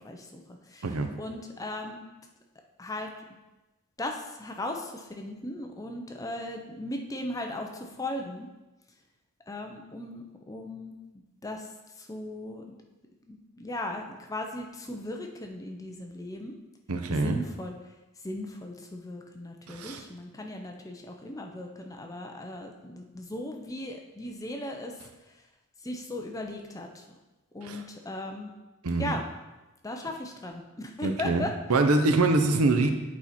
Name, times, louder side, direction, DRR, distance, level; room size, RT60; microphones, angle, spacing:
voice 1, 0.0-2.1 2.8-3.1 4.0-8.5 9.5-10.9 11.4-12.7 13.2-16.6 17.1-17.9 18.2-25.4 25.8-27.2 27.5-28.5 29.0-29.2 29.8-31.6, left 1 dB, 15° left, 3 dB, 0.6 m, -37 dB
voice 2, 16.9-17.4 19.7-20.0 27.7-27.8 28.8-29.2 31.0-31.4 31.7-32.9, right 2 dB, 80° right, 6 dB, 0.7 m, -24 dB
8.3 x 4.5 x 4.2 m, 1.1 s
head